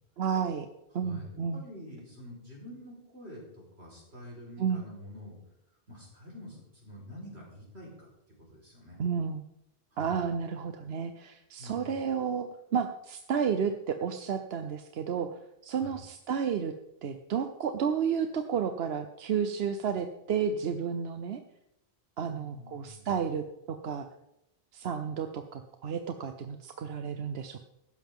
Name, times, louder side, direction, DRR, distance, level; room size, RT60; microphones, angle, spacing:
voice 1, 0.2-0.7 0.9-1.6 4.6-4.8 9.0-9.4 10.0-12.5 12.7-15.3 15.6-16.7 17.0-21.4 22.2-24.1 24.7-27.6, right 7 dB, 75° right, 7 dB, 1.0 m, -31 dB
voice 2, 1.0-5.4 5.9-8.1 8.5-9.0 9.9-10.3 11.6-12.0 15.7-16.0 22.3-23.1, left 1 dB, 90° right, -2 dB, 4.8 m, -47 dB
15.0 x 12.5 x 3.7 m, 0.87 s
omnidirectional pair, 1.1 m